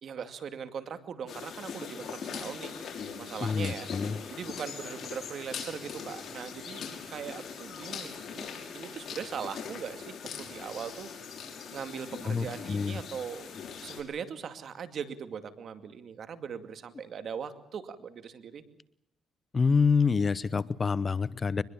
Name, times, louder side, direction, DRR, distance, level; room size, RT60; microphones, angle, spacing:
voice 1, 0.0-2.7 3.2-3.9 4.3-8.5 8.7-11.4 11.7-13.5 13.8-18.6, right 7 dB, 60° right, 9 dB, 2.4 m, -40 dB
sound 1, 1.3-14.0, left 6 dB, 55° left, 5.9 m, -41 dB
voice 2, 3.4-4.2 12.2-13.0 19.5-21.6, left 5 dB, 35° left, 18 dB, 0.9 m, -27 dB
23.5 x 21.5 x 7.2 m, 0.75 s
cardioid pair, 90°, 0 cm